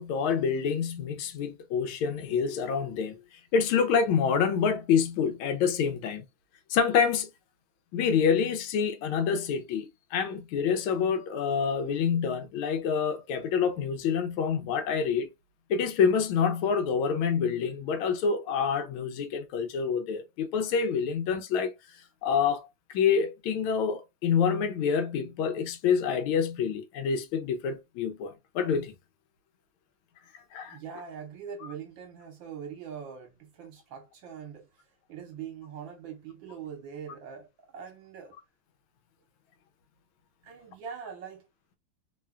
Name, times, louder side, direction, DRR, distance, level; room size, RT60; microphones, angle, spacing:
voice 1, 0.0-3.2 3.5-6.2 6.7-7.3 7.9-15.3 15.7-21.7 22.2-28.9 30.5-30.8, left 6 dB, 80° left, 1.4 m, -27 dB
voice 2, 30.7-34.8 35.1-38.3 40.4-41.4, right 7 dB, 70° right, 1.5 m, -42 dB
3.6 x 2.2 x 2.3 m
omnidirectional pair, 2.3 m